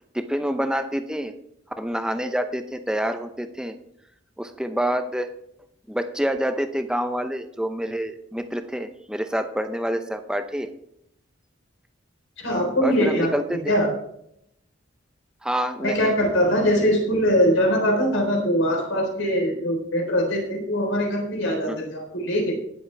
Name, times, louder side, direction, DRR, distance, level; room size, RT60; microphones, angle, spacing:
voice 1, 0.1-1.3 1.8-3.8 4.4-5.3 5.9-10.7 12.8-13.6 15.4-16.2 21.7-21.8, equal, 5° right, 8 dB, 0.7 m, -27 dB
voice 2, 12.4-13.3 13.7-13.9 15.8-22.5, equal, 80° left, 1 dB, 3.9 m, -22 dB
18.5 x 7.2 x 3.4 m, 0.75 s
head